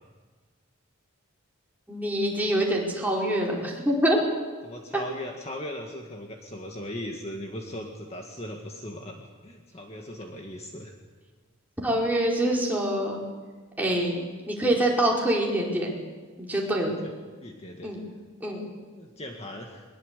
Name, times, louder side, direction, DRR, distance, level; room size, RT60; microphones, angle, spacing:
voice 1, 1.9-4.2 11.8-13.2 13.8-15.9 16.4-16.9 17.8-18.0 18.4-18.6, right 1 dB, 10° right, -3 dB, 4.8 m, -25 dB
voice 2, 4.6-10.9 16.8-17.1 17.4-17.9 18.9-19.8, left 1 dB, 30° left, 1 dB, 2.0 m, -38 dB
23.0 x 22.0 x 8.4 m, 1.4 s
head